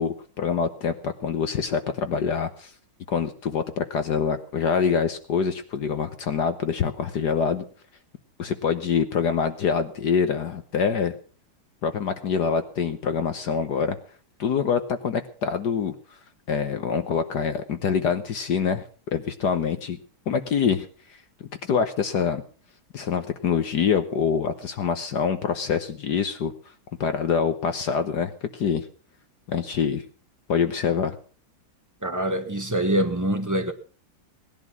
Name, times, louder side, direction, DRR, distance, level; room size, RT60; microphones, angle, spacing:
voice 1, 0.0-2.7 3.1-7.6 8.4-11.1 11.8-14.0 14.4-15.9 16.5-20.0 20.3-20.9 21.6-22.4 22.9-26.5 27.0-28.9 29.5-30.0 30.5-31.2, left 6 dB, 60° left, 1.5 m, -25 dB
voice 2, 32.0-33.7, right 1 dB, 10° right, 1.3 m, -24 dB
18.5 x 11.0 x 6.0 m
omnidirectional pair, 2.2 m